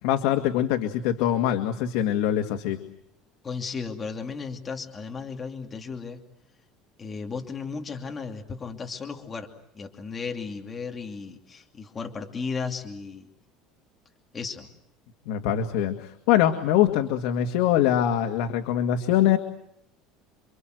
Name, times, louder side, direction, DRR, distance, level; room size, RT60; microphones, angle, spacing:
voice 1, 0.0-2.8 15.3-19.4, left 11 dB, 75° left, 5 dB, 2.0 m, -23 dB
voice 2, 3.4-6.2 7.0-9.5 9.7-13.3 14.3-14.7, left 5 dB, 20° left, 3 dB, 2.7 m, -35 dB
29.0 x 24.5 x 7.9 m, 0.74 s
cardioid pair, 160°, 0 cm